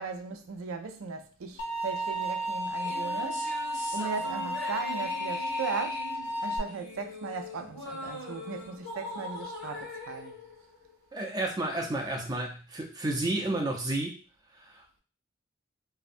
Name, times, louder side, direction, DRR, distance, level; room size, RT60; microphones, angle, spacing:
voice 1, 0.0-3.5 3.9-6.0 6.4-10.3, right 5 dB, 85° right, 0.4 m, -37 dB
sound 1, 1.6-6.6, equal, 70° left, 0.5 m, -33 dB
sound 2, 2.7-11.3, left 1 dB, 90° left, 1.3 m, -41 dB
voice 2, 11.1-14.2 14.6-14.8, right 2 dB, 20° right, 0.4 m, -31 dB
2.6 x 2.1 x 2.5 m
head